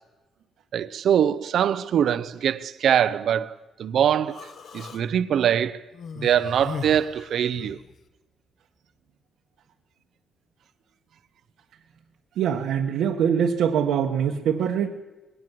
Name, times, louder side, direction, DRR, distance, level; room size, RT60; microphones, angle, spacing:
voice 1, 0.7-4.5 4.7-5.8 6.2-7.8, right 9 dB, 55° right, 0.7 m, -23 dB
Human voice, 4.3-5.0 5.9-7.9, left 6 dB, 50° left, 1.6 m, -38 dB
voice 2, 12.4-14.9, right 8 dB, 90° right, 1.4 m, -23 dB
20.0 x 18.0 x 7.6 m
cardioid pair, 165°, 0 cm